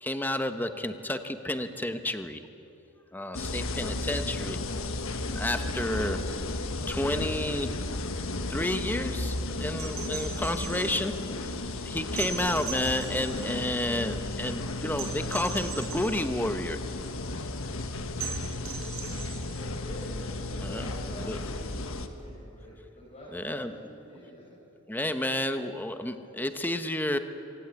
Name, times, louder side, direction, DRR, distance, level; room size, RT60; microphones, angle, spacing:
voice 1, 0.0-2.4 3.1-4.6 5.3-6.3 6.9-7.8 8.5-11.5 11.8-16.8 20.6-20.9 21.2-21.4 23.3-23.7 24.9-27.2, left 1 dB, 10° left, 8 dB, 1.0 m, -31 dB
sound 1, 3.3-22.1, left 2 dB, 70° left, 1.4 m, -34 dB
sound 2, 9.7-11.0 12.2-13.7 15.0-16.3 18.2-19.6 21.5-21.6, right 7 dB, 75° right, 5.0 m, -39 dB
voice 2, 19.5-24.6, equal, 30° left, -7 dB, 5.6 m, -47 dB
26.0 x 17.5 x 8.3 m, 2.9 s
head